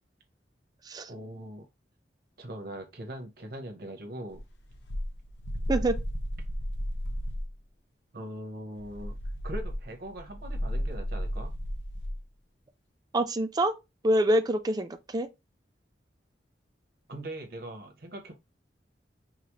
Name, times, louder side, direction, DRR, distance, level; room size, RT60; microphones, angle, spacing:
voice 1, 1.1-1.7 2.4-4.4 8.1-9.1 9.4-11.5 17.1-18.3, right 1 dB, 60° right, 0.9 m, -41 dB
sound 1, 4.3-7.6 8.8-12.2, equal, 80° left, 0.7 m, -34 dB
voice 2, 13.1-13.7 14.0-15.3, right 1 dB, 20° right, 0.4 m, -26 dB
4.8 x 2.0 x 3.0 m
head